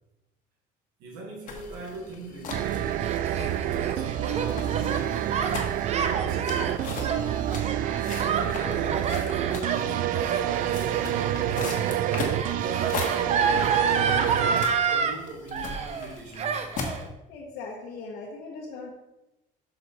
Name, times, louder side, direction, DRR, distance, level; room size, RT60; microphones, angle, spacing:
voice 1, 1.0-5.5 5.9-6.9 8.0-11.9 12.5-16.7, right 2 dB, 85° right, -2 dB, 2.0 m, -40 dB
sound 1, 1.5-17.0, left 4 dB, 55° left, 1.6 m, -39 dB
sound 2, 2.5-14.7, right 12 dB, 60° right, 0.4 m, -28 dB
Gasp, 2.7-15.2 15.5-16.1 16.4-17.0, right 6 dB, 40° right, 0.8 m, -29 dB
voice 2, 17.3-18.9, left 3 dB, 80° left, -3 dB, 1.3 m, -39 dB
6.4 x 6.3 x 4.2 m, 0.97 s
cardioid pair, 115°, 16 cm